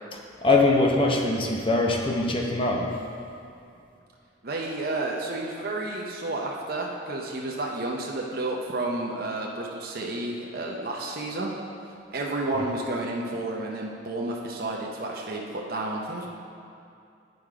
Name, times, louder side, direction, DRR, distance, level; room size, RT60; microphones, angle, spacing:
voice 1, 0.4-2.9, left 2 dB, 30° left, 0 dB, 0.8 m, -22 dB
voice 2, 4.4-11.5 12.1-16.3, right 2 dB, 50° right, -1 dB, 0.8 m, -31 dB
9.4 x 5.1 x 4.9 m, 2.6 s
head